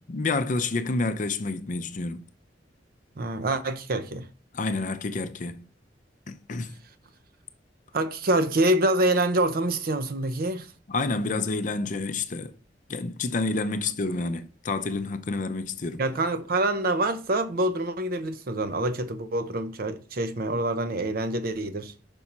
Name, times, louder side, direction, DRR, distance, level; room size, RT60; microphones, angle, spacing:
voice 1, 0.1-2.3 4.5-5.7 6.3-6.7 10.9-12.5 12.9-16.0, left 3 dB, 45° left, 0.5 m, -29 dB
voice 2, 3.2-4.3 7.9-10.7 16.0-21.9, right 1 dB, 55° right, 0.7 m, -26 dB
5.3 x 4.2 x 5.9 m
head